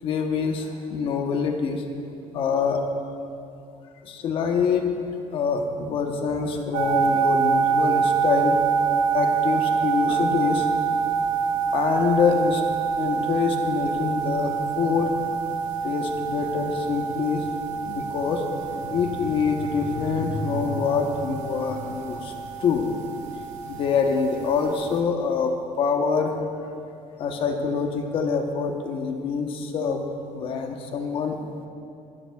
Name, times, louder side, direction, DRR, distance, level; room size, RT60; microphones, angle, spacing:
voice 1, 0.0-1.8 2.3-2.8 4.0-5.0 5.3-8.6 9.1-10.8 11.7-12.6 13.0-15.1 15.8-17.4 17.9-22.3 22.6-22.8 23.7-26.3 27.2-30.0 30.3-31.4, left 5 dB, 45° left, 4 dB, 1.0 m, -25 dB
sound 1, 6.7-25.0, right 6 dB, 75° right, 1.1 m, -26 dB
24.0 x 12.0 x 2.3 m, 2.6 s
cardioid pair, 160°, 12 cm